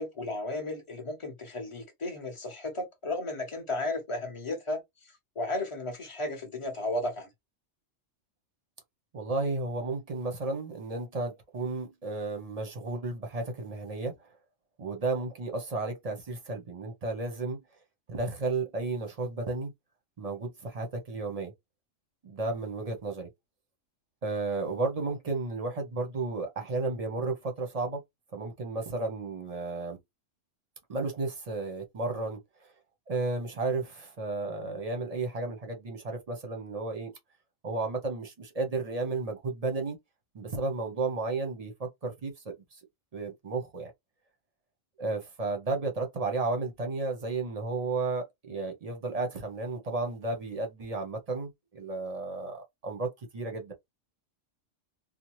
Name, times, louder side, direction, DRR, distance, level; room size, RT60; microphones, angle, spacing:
voice 1, 0.0-7.3, left 2 dB, 30° left, 0.9 m, -34 dB
voice 2, 9.1-14.1 14.8-17.6 18.1-19.7 20.2-21.5 22.2-23.3 24.2-28.0 28.3-30.0 30.9-32.4 33.1-37.1 37.6-40.0 40.3-42.5 43.1-43.9 45.0-53.7, right 3 dB, 35° right, 0.7 m, -33 dB
2.8 x 2.1 x 3.0 m
omnidirectional pair, 1.3 m